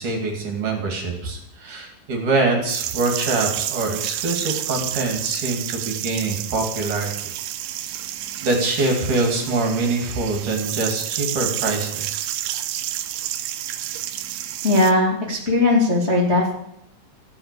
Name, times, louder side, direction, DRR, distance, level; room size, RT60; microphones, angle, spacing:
voice 1, 0.0-7.1 8.4-12.3, right 3 dB, 50° right, 2 dB, 3.3 m, -24 dB
sound 1, 2.7-14.9, right 12 dB, 90° right, 3.4 m, -30 dB
voice 2, 14.6-16.5, left 2 dB, 25° left, -3 dB, 1.7 m, -18 dB
14.5 x 9.9 x 8.3 m, 0.77 s
omnidirectional pair, 5.5 m